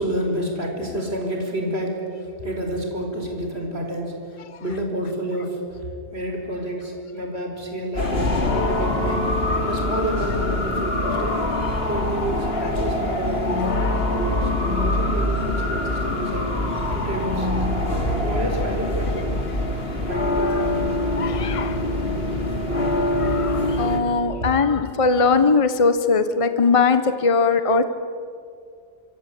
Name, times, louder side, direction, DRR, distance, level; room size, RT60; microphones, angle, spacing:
voice 1, 0.0-2.0 2.4-4.1 4.6-5.6 6.1-11.5 11.9-16.6 16.9-17.5 18.1-19.2 20.1-20.9, equal, 70° right, 2 dB, 5.3 m, -29 dB
sound 1, 7.9-24.0, left 1 dB, 65° left, 3.1 m, -24 dB
voice 2, 21.2-22.1 22.6-22.7 23.2-27.8, left 4 dB, 30° left, 10 dB, 1.1 m, -20 dB
26.0 x 25.5 x 8.6 m, 2.4 s
omnidirectional pair, 1.1 m